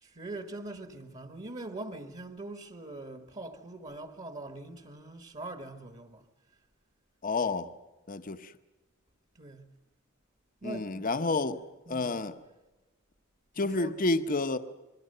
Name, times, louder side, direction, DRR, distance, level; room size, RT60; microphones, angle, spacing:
voice 1, 0.0-6.3 9.3-9.7 10.6-11.4 11.9-12.2 13.6-13.9, right 2 dB, 35° right, 1.5 m, -43 dB
voice 2, 7.2-7.7 8.1-8.5 10.6-11.6 11.9-12.3 13.6-14.6, left 3 dB, 40° left, 0.9 m, -29 dB
26.5 x 22.5 x 6.7 m
head